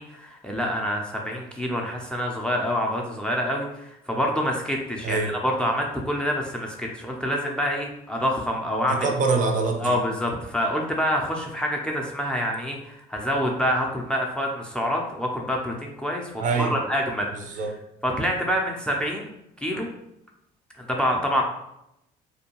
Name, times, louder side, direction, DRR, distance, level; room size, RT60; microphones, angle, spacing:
voice 1, 0.0-9.1 9.8-17.3 18.0-19.3 19.6-19.9 20.8-21.4, equal, 5° left, 0 dB, 0.3 m, -26 dB
voice 2, 8.9-10.0 16.4-16.7 17.3-17.7, right 4 dB, 50° right, 4 dB, 0.5 m, -24 dB
2.6 x 2.2 x 2.8 m, 0.84 s
cardioid pair, 110°, 17 cm